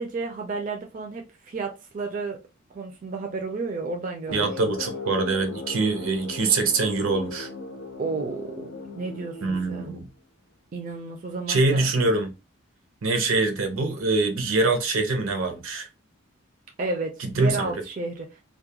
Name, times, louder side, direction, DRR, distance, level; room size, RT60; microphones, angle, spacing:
voice 1, 0.0-2.4 2.7-4.7 8.0-10.0 10.7-11.8 16.8-18.4, right 3 dB, 40° right, 0.4 m, -32 dB
sound 1, 4.3-10.0, left 3 dB, 75° left, 0.5 m, -38 dB
voice 2, 4.3-7.5 9.4-10.1 11.5-12.3 13.0-15.9 17.3-17.7, right 3 dB, 80° right, 0.6 m, -24 dB
2.3 x 2.1 x 2.7 m
head